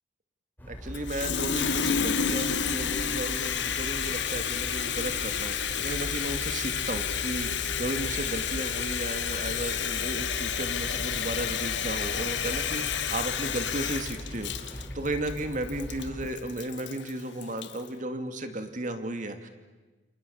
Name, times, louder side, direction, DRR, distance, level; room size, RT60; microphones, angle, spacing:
sound 1, 0.6-16.3, equal, 10° left, 4.4 m, -40 dB
voice 1, 0.7-19.5, right 1 dB, 45° right, 8 dB, 2.5 m, -34 dB
Water tap faucet, 0.9-17.9, left 7 dB, 85° left, 1.6 m, -30 dB
29.0 x 28.0 x 7.1 m, 1.2 s
head